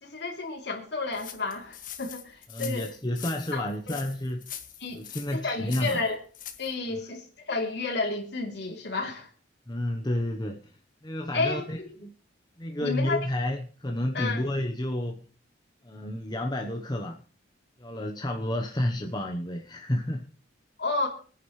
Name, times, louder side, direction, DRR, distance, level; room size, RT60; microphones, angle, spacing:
voice 1, 0.0-2.9 3.5-4.0 4.8-5.0 5.3-6.2 6.6-9.3 11.3-11.6 12.8-13.3 14.1-14.4 20.8-21.1, left 3 dB, 60° left, 3.3 m, -31 dB
sound 1, 1.1-6.7, left 10 dB, 45° left, 1.6 m, -43 dB
voice 2, 2.5-4.5 4.9-6.0 9.7-10.7 11.0-12.1 12.6-15.3 15.8-17.2 17.8-20.2, left 1 dB, 20° left, 1.0 m, -30 dB
26.0 x 10.0 x 3.3 m
head